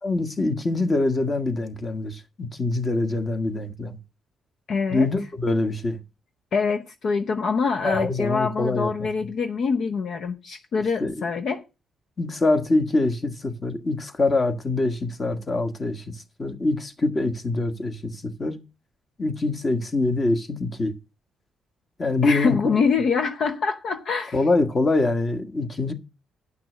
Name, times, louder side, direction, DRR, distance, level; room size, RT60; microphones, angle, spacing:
voice 1, 0.0-4.0 4.9-6.0 7.8-9.1 11.0-11.2 12.2-18.6 19.2-20.9 22.0-22.8 24.3-25.9, left 2 dB, 30° left, 1.5 m, -24 dB
voice 2, 4.7-5.1 6.5-11.6 22.2-24.4, left 5 dB, 60° left, 0.8 m, -25 dB
9.7 x 5.9 x 6.3 m
cardioid pair, 90°, 0 cm